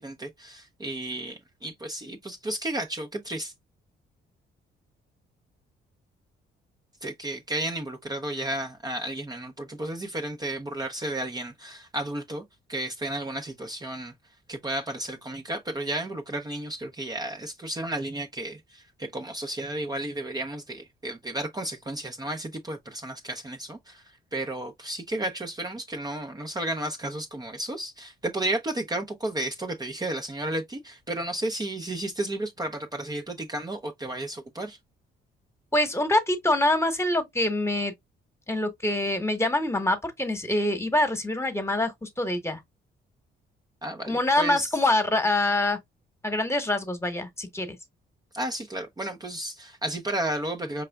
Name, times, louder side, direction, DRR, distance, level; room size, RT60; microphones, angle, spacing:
voice 1, 0.0-3.5 7.0-12.4 12.7-14.1 14.5-24.0 24.3-34.8 43.8-44.8 48.3-50.8, right 1 dB, 20° right, 0.7 m, -33 dB
voice 2, 35.7-37.9 38.5-42.6 44.1-45.8 46.2-47.8, left 1 dB, 15° left, 1.2 m, -25 dB
4.9 x 3.4 x 2.2 m
cardioid pair, 90°, 20 cm